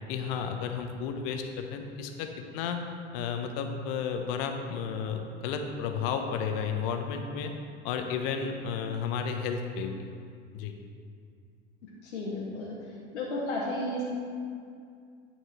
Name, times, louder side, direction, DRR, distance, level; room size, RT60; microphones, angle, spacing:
voice 1, 0.1-2.8 3.1-7.5 7.8-10.1 10.5-10.7, left 6 dB, 55° left, 5 dB, 0.9 m, -32 dB
voice 2, 12.0-12.7 13.1-14.0, left 1 dB, 75° left, -4 dB, 1.3 m, -32 dB
9.2 x 4.6 x 4.4 m, 2.3 s
hypercardioid pair, 85°, 35 cm